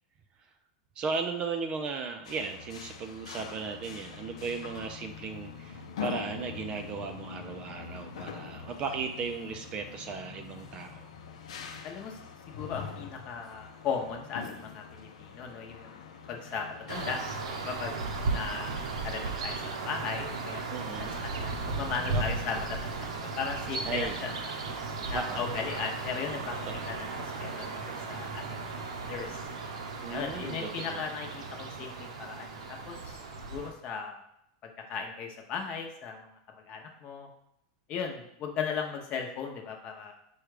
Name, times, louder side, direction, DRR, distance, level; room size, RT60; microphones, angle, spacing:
voice 1, 1.0-11.1 20.7-21.2 22.1-22.2 23.9-24.2 25.1-25.6 26.7-26.8 30.0-31.0, right 5 dB, 30° right, 6 dB, 0.4 m, -36 dB
sound 1, 2.2-17.2, left 6 dB, 85° left, 0.5 m, -43 dB
voice 2, 11.8-12.2 12.5-17.2 17.6-18.0 18.3-20.6 21.0-24.5 25.1-26.6 26.9-29.4 30.1-33.2 33.5-34.2 34.6-36.3 36.7-37.3 37.9-40.1, left 6 dB, 35° left, 2 dB, 0.8 m, -37 dB
sound 2, 16.9-33.7, right 3 dB, 85° right, 0.7 m, -36 dB
4.8 x 2.3 x 4.8 m, 0.76 s
supercardioid pair, 145°, 3 cm